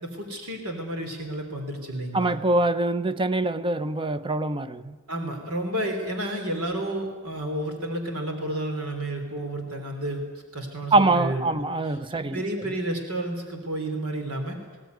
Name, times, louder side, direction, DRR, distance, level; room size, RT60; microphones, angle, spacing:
voice 1, 0.0-2.3 5.1-10.2 10.5-11.4 12.1-14.6, right 1 dB, 75° right, 3.3 m, -31 dB
voice 2, 2.1-5.0 10.9-12.4, right 2 dB, 25° right, 0.7 m, -24 dB
20.0 x 17.5 x 9.4 m
head